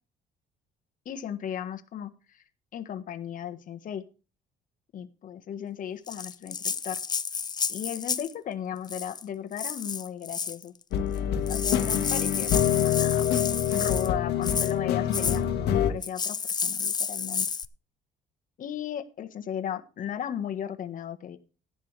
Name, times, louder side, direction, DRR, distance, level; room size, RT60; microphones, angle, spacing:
voice 1, 1.0-2.4 2.7-4.0 4.9-7.0 7.7-10.7 11.4-17.5 18.6-21.4, left 9 dB, 50° left, 8 dB, 1.4 m, -36 dB
Rattle (instrument), 6.1-8.3 8.8-9.2 9.6-10.6 11.2-11.3 11.5-14.1 14.4-14.7 15.1-15.4 16.0-17.7, left 6 dB, 25° left, 0.6 m, -31 dB
sound 1, 10.9-15.9, left 9 dB, 80° left, 1.6 m, -26 dB
14.5 x 11.0 x 3.4 m, 0.34 s
cardioid pair, 110°, 17 cm